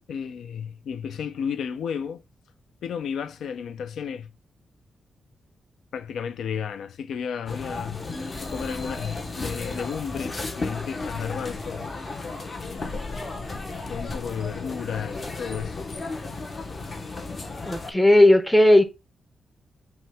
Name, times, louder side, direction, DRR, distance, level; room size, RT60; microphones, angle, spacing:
voice 1, 0.1-2.2 2.8-4.3 5.9-8.1 8.4-11.9 12.6-13.2 13.9-15.9, left 7 dB, 85° left, 0.5 m, -33 dB
sound 1, 7.5-17.9, left 3 dB, 35° left, 0.9 m, -34 dB
voice 2, 17.7-18.8, left 1 dB, 5° left, 0.6 m, -16 dB
5.5 x 2.1 x 3.5 m
wide cardioid pair, 130°, 0 cm